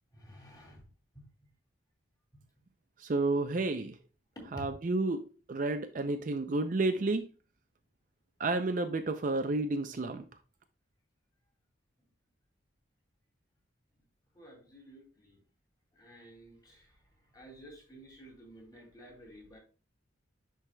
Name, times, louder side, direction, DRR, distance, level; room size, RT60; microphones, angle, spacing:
voice 1, 0.1-0.9 4.4-4.7 14.3-15.4 15.9-17.0 17.3-19.6, equal, 20° left, 2.3 m, -51 dB
voice 2, 3.0-4.0 4.5-7.3 8.4-10.2, right 2 dB, 40° right, 0.4 m, -31 dB
10.5 x 4.7 x 2.2 m
head